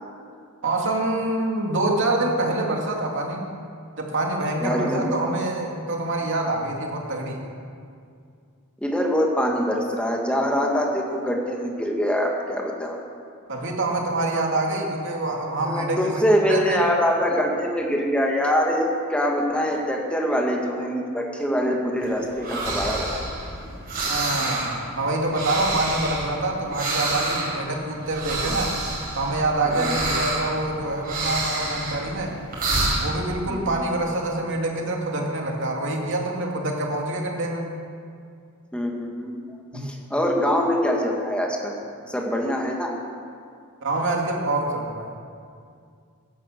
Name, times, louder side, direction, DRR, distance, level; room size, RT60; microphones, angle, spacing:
voice 1, 0.6-3.4 4.0-7.4 13.5-16.2 16.5-16.8 24.1-28.7 29.2-32.4 33.0-37.7 39.7-39.9 43.8-45.1, right 2 dB, 55° right, 0 dB, 2.4 m, -26 dB
voice 2, 4.6-5.2 8.8-13.0 15.6-23.1 29.7-29.9 33.5-33.6 38.7-39.4 39.7-41.7 42.1-43.0, equal, 5° left, 0 dB, 1.9 m, -24 dB
sound 1, 22.0-33.2, right 2 dB, 40° right, 4.8 m, -28 dB
15.0 x 11.0 x 6.7 m, 2.3 s
head